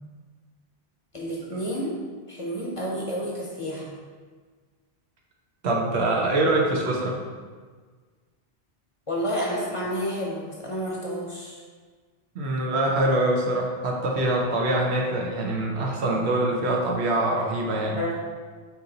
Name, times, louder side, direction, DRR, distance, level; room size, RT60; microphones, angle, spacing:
voice 1, 1.1-2.0 2.3-4.0 9.1-11.6 17.9-18.1, equal, 35° left, -4 dB, 0.7 m, -30 dB
voice 2, 5.6-7.2 12.3-18.0, right 1 dB, 85° right, -1 dB, 1.0 m, -24 dB
4.5 x 2.6 x 3.8 m, 1.5 s
omnidirectional pair, 1.1 m